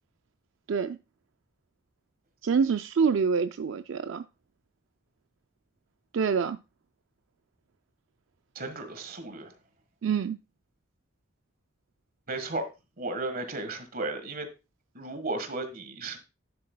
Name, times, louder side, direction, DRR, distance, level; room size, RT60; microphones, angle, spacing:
voice 1, 2.4-4.2 6.1-6.6 10.0-10.4, right 6 dB, 80° right, 0.4 m, -26 dB
voice 2, 8.5-9.5 12.3-12.6 13.0-14.5 14.9-16.2, right 2 dB, 50° right, 1.5 m, -34 dB
10.5 x 7.5 x 2.2 m
head